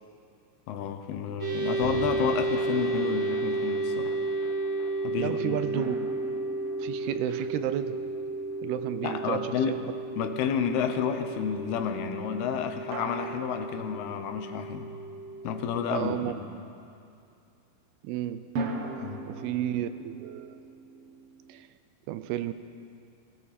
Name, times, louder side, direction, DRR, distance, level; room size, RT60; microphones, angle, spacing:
voice 1, 0.7-4.1 5.0-5.6 9.0-9.8 10.2-14.9 15.4-16.3 19.0-19.3, left 7 dB, 85° left, 6 dB, 2.9 m, -30 dB
sound 1, 1.4-16.1, right 3 dB, 20° right, 2.6 m, -33 dB
sound 2, 1.8-8.2 8.5-8.6 8.9-9.0, left 6 dB, 65° left, 2.3 m, -46 dB
voice 2, 5.2-6.0 6.8-8.0 8.6-9.8 15.9-16.3 18.0-18.5 19.3-20.6 21.5-21.7 22.1-22.5, right 13 dB, 85° right, 12 dB, 2.6 m, -32 dB
sound 3, 5.7-9.1 12.9-14.9 18.5-21.6, right 2 dB, 65° right, 1.5 m, -40 dB
17.5 x 17.0 x 4.2 m, 2.5 s
omnidirectional pair, 4.5 m